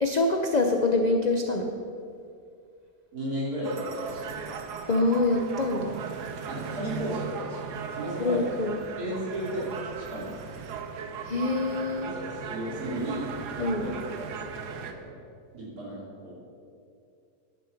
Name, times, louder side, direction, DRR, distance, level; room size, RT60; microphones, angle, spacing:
voice 1, 0.0-1.7 4.9-6.0 8.2-8.8 11.2-12.1 13.6-13.9, left 2 dB, 55° left, 3 dB, 0.4 m, -25 dB
voice 2, 3.1-4.3 6.5-8.5 9.0-10.3 12.0-13.3 13.5-15.1 15.5-16.4, right 1 dB, 65° right, -5 dB, 3.4 m, -34 dB
sound 1, 3.6-14.9, right 6 dB, 85° right, 1.4 m, -38 dB
10.5 x 6.7 x 7.1 m, 2.4 s
omnidirectional pair, 1.7 m